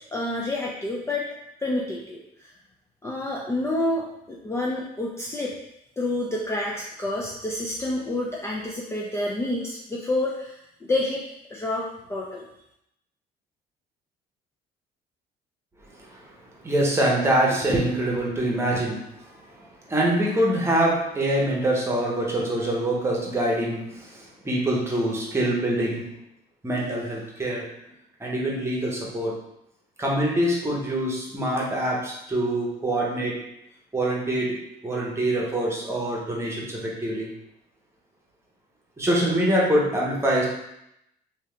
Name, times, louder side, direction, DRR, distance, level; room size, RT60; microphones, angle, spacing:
voice 1, 0.1-1.3 1.6-2.5 3.0-5.6 6.0-11.2 11.5-12.5, left 2 dB, 15° left, -3 dB, 0.5 m, -28 dB
voice 2, 16.6-19.0 19.9-26.0 26.6-27.7 28.2-29.3 30.0-33.4 33.9-34.6 34.8-37.3 39.0-40.5, right 1 dB, 15° right, -3 dB, 1.1 m, -24 dB
3.4 x 2.8 x 3.4 m, 0.80 s
cardioid pair, 110°, 17 cm